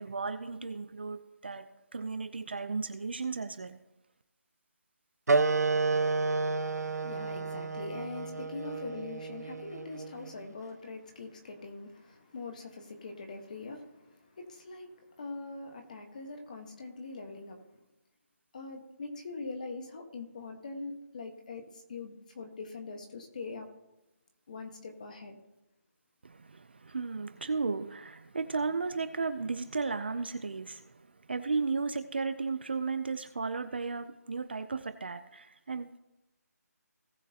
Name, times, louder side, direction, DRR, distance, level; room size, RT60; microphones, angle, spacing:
voice 1, 0.0-3.8 26.2-36.0, right 4 dB, 40° right, 0.5 m, -35 dB
sound 1, 5.3-10.4, right 3 dB, 75° right, 0.7 m, -30 dB
voice 2, 6.7-17.6 18.5-23.7 24.5-25.4, left 3 dB, 30° left, 1.3 m, -43 dB
18.5 x 6.4 x 2.9 m
hypercardioid pair, 175°, 9 cm